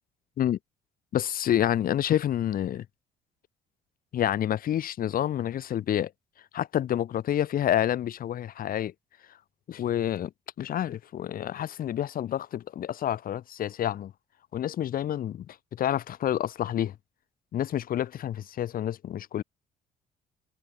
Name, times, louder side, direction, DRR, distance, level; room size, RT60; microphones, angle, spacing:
voice 1, 1.1-2.9 4.1-6.1 6.5-8.9 9.7-10.3 10.6-14.1 14.5-16.9 17.5-19.4, left 11 dB, 60° left, 4.0 m, -28 dB
cardioid pair, 110°, 17 cm